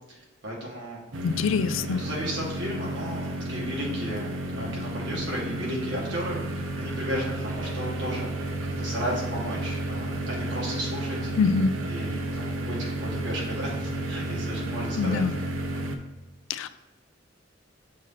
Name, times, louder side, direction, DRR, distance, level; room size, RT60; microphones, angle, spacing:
voice 1, 0.1-1.0 2.0-8.3 8.8-11.3 11.8-15.2, equal, 65° right, -4 dB, 1.9 m, -34 dB
sound 1, 1.1-16.0, right 1 dB, 90° right, 0.7 m, -32 dB
voice 2, 1.2-2.0 11.4-11.7 15.0-15.4 16.5-16.7, left 5 dB, 90° left, 12 dB, 0.4 m, -24 dB
6.3 x 2.8 x 5.6 m, 1.2 s
head